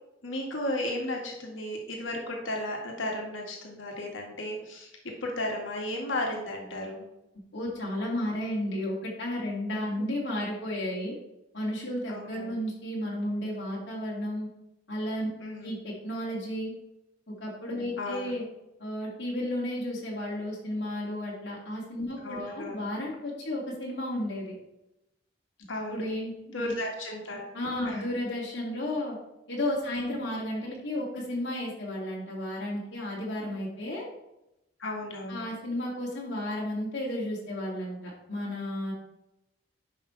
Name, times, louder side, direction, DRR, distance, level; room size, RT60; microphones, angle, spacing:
voice 1, 0.2-7.1 9.7-10.0 12.1-12.6 15.4-15.8 18.0-18.3 22.2-22.9 25.7-26.0 26.5-27.5 27.9-28.0 30.0-30.2 34.8-35.4, left 1 dB, 90° left, 0 dB, 1.8 m, -34 dB
voice 2, 7.5-11.1 11.5-14.5 14.9-15.3 15.6-16.7 17.3-18.4 18.8-24.5 25.9-26.7 27.5-29.2 29.5-34.0 35.3-38.9, left 1 dB, 60° left, -5 dB, 2.4 m, -33 dB
10.5 x 5.4 x 3.3 m, 0.90 s
head